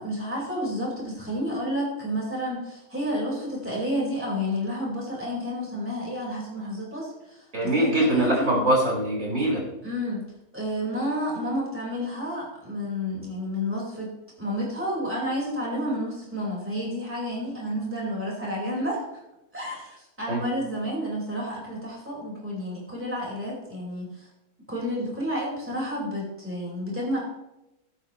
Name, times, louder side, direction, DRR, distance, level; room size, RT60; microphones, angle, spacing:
voice 1, 0.0-8.5 9.8-10.2 10.5-19.0 19.5-24.3 24.7-27.2, equal, 10° right, -5 dB, 5.0 m, -30 dB
voice 2, 7.5-9.6 20.3-20.4, right 1 dB, 60° right, -4 dB, 5.6 m, -23 dB
20.5 x 9.9 x 3.3 m, 0.91 s
omnidirectional pair, 1.6 m